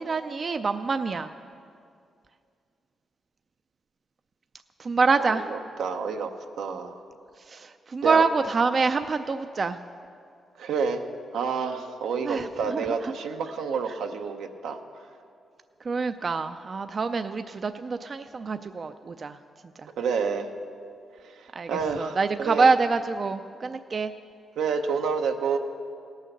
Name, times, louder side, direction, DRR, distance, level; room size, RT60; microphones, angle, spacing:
voice 1, 0.0-1.4 4.8-5.4 7.4-9.8 12.2-13.1 13.9-14.0 15.8-19.4 19.8-19.9 21.5-24.1, right 4 dB, 45° right, 9 dB, 0.4 m, -26 dB
voice 2, 5.8-6.3 6.6-7.0 8.0-8.2 10.6-11.0 11.3-14.8 20.0-20.5 21.4-22.7 24.6-25.6, right 5 dB, 90° right, 5 dB, 0.8 m, -28 dB
17.5 x 6.4 x 6.6 m, 2.4 s
cardioid pair, 80°, 0 cm